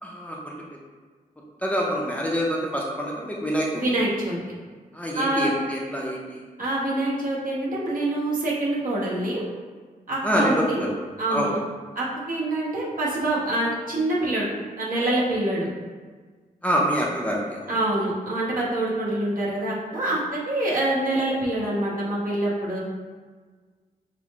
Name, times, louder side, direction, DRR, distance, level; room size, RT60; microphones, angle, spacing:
voice 1, 0.0-0.6 1.6-3.8 4.9-6.4 10.2-10.9 11.3-11.5 16.6-17.7, equal, 10° left, -3 dB, 0.5 m, -26 dB
voice 2, 3.7-4.4 5.1-5.5 6.6-9.4 10.1-10.9 11.2-11.5 11.9-14.5 14.8-15.7 17.7-22.8, right 1 dB, 70° right, -6 dB, 1.2 m, -25 dB
6.0 x 2.0 x 3.6 m, 1.5 s
wide cardioid pair, 135°, 15 cm